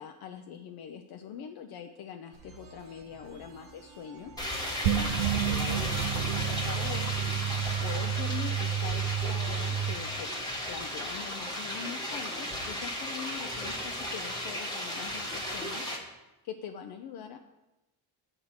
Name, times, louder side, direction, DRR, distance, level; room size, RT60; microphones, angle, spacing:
voice 1, 0.0-7.5 7.8-10.3 10.7-17.4, left 8 dB, 60° left, 5 dB, 0.6 m, -43 dB
sound 1, 2.3-12.9, right 4 dB, 90° right, 1.3 m, -53 dB
sound 2, 4.4-16.0, left 1 dB, 10° left, 1.2 m, -35 dB
sound 3, 4.8-10.0, right 9 dB, 75° right, 0.6 m, -30 dB
7.9 x 3.7 x 6.3 m, 1.0 s
cardioid pair, 145°, 43 cm